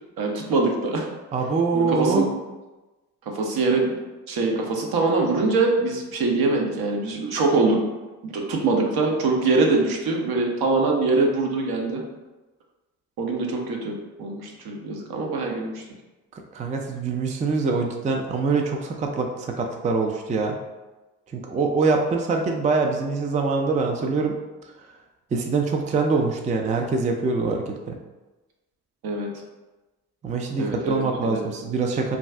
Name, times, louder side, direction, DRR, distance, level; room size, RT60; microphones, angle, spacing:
voice 1, 0.2-1.1 1.7-2.3 3.3-4.0 4.3-7.8 8.2-12.0 13.2-15.8 29.0-29.3 30.5-31.5, right 3 dB, 60° right, 1 dB, 0.8 m, -23 dB
voice 2, 1.3-2.3 16.5-20.6 21.3-24.3 25.3-28.0 30.2-32.2, right 4 dB, 20° right, 2 dB, 0.4 m, -24 dB
2.6 x 2.3 x 3.3 m, 1.1 s
hypercardioid pair, 45°, 41 cm